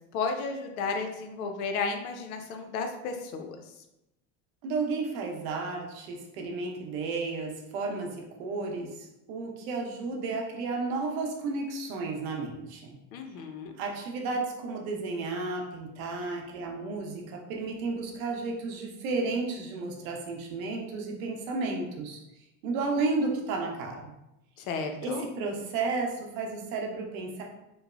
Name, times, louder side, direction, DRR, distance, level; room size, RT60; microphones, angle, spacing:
voice 1, 0.1-3.6 13.1-13.7 24.6-25.3, left 4 dB, 85° left, 5 dB, 0.5 m, -33 dB
voice 2, 4.6-8.9 9.3-13.0 13.8-22.2 22.6-24.2 25.0-27.4, right 3 dB, 80° right, 1 dB, 0.7 m, -32 dB
3.0 x 2.0 x 2.3 m, 0.91 s
supercardioid pair, 100°, 41 cm